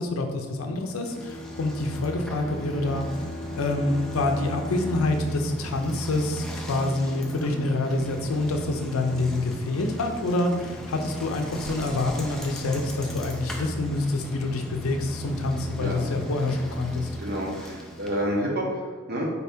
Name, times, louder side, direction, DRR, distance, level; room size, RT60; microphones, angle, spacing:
voice 1, 0.0-3.1 3.6-17.1, left 2 dB, 85° left, 5 dB, 0.5 m, -27 dB
Bicycle, 0.8-18.4, equal, 5° left, 0.3 m, -36 dB
Bowed string instrument, 1.1-6.6, left 3 dB, 40° left, 0.8 m, -41 dB
voice 2, 17.2-19.3, equal, 50° right, -2 dB, 0.8 m, -29 dB
4.1 x 2.7 x 3.4 m, 1.4 s
head